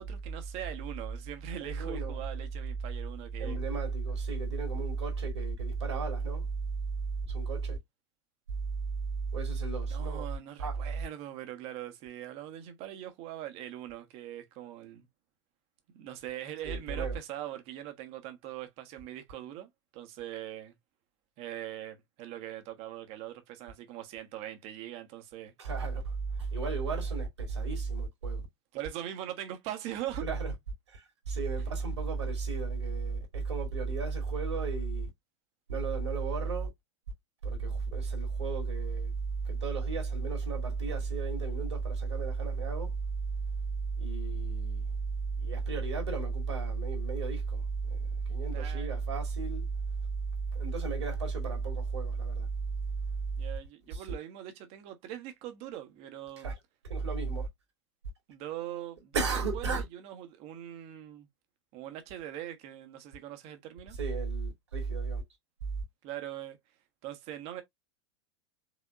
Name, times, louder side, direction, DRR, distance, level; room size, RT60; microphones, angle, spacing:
voice 1, 0.0-3.6 9.9-15.1 15.9-20.7 21.4-25.5 28.7-30.3 48.5-49.0 53.4-56.5 58.3-61.3 61.7-64.0 66.0-66.6 67.0-67.6, right 12 dB, 40° right, 1.2 m, -42 dB
voice 2, 1.6-2.2 3.4-6.5 7.3-7.8 9.3-10.3 10.6-10.8 16.6-17.2 25.6-26.1 26.4-28.4 30.2-30.5 30.9-35.1 35.7-36.7 37.4-39.1 39.4-42.9 44.0-44.8 45.4-47.6 47.9-48.0 48.3-49.7 50.5-52.5 53.9-54.0 56.4-56.6 56.9-57.5 59.1-59.8 64.0-65.2, right 4 dB, 70° right, 2.3 m, -33 dB
5.0 x 3.5 x 2.4 m
figure-of-eight pair, 85°, 15 cm